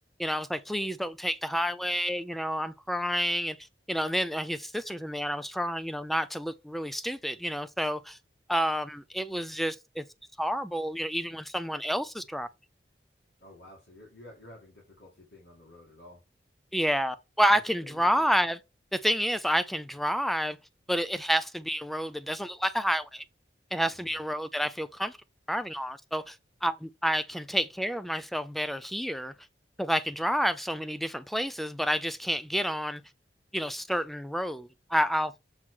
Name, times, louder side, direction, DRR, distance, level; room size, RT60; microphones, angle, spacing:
voice 1, 0.2-3.6 3.9-8.2 8.5-10.0 10.4-12.5 16.7-18.6 18.9-20.6 20.9-23.2 23.7-25.2 25.5-29.3 29.8-33.0 33.5-35.4, equal, ahead, 0.4 m, -29 dB
voice 2, 13.4-16.2 17.7-18.3 23.9-24.2, left 1 dB, 80° left, 2.3 m, -51 dB
7.5 x 3.6 x 4.6 m
head